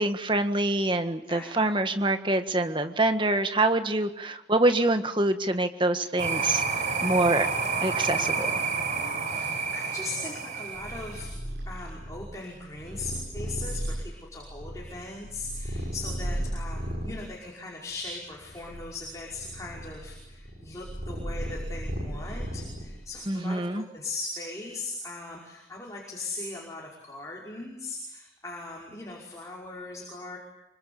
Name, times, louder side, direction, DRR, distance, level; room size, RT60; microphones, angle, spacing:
voice 1, 0.0-6.6 7.0-7.5 7.8-8.6 23.3-23.8, right 2 dB, 25° right, 8 dB, 1.7 m, -25 dB
voice 2, 1.3-1.7 9.2-11.3 11.7-30.4, left 2 dB, 15° left, -3 dB, 5.4 m, -39 dB
sound 1, 6.2-11.3, right 4 dB, 45° right, 4.5 m, -29 dB
Purr, 10.7-17.3 17.9-23.2, equal, 60° right, 6.5 m, -35 dB
26.5 x 25.0 x 8.7 m, 0.88 s
head